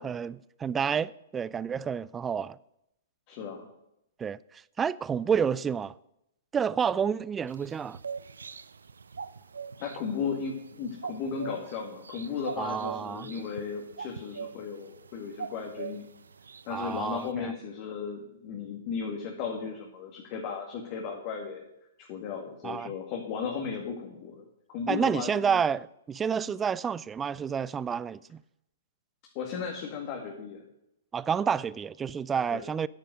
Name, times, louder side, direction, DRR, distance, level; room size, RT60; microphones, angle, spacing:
voice 1, 0.0-2.6 4.2-6.0 6.5-8.0 12.6-13.3 16.7-17.5 22.6-22.9 24.9-28.4 31.1-32.9, right 7 dB, 15° right, 0.4 m, -29 dB
voice 2, 3.3-3.7 9.8-16.1 16.6-21.6 22.0-25.6 29.3-30.6 32.5-32.6, left 6 dB, 40° left, 2.0 m, -35 dB
sound 1, 7.5-17.3, right 6 dB, 75° right, 0.6 m, -43 dB
10.0 x 9.8 x 6.3 m
figure-of-eight pair, 115°, 0 cm